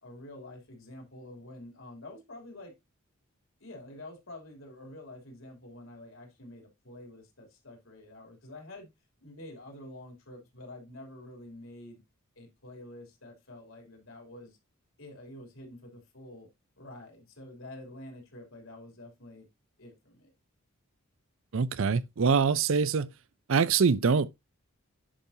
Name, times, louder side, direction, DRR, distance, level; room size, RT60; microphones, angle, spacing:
voice 1, 0.0-2.7 3.6-8.9 9.2-12.0 12.4-14.6 15.0-16.5 16.8-19.5 19.8-20.3, left 1 dB, 70° left, 3.1 m, -48 dB
voice 2, 21.5-23.1 23.5-24.3, right 5 dB, 65° right, 0.5 m, -24 dB
10.0 x 5.4 x 2.7 m
head